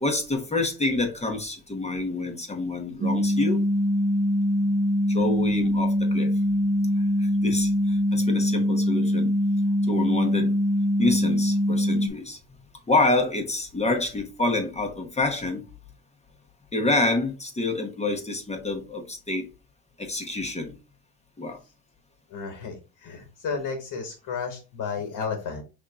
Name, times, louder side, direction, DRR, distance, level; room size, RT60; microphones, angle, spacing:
voice 1, 0.0-3.6 5.1-6.3 7.2-9.3 9.9-10.5 11.0-12.4 12.9-15.6 16.7-19.5 20.0-20.7 21.4-21.6, left 2 dB, 15° left, 0.9 m, -27 dB
sound 1, 3.0-12.1, equal, 30° right, 0.4 m, -23 dB
voice 2, 22.3-25.6, left 5 dB, 60° left, 1.3 m, -32 dB
5.3 x 3.5 x 2.4 m
cardioid pair, 120°, 37 cm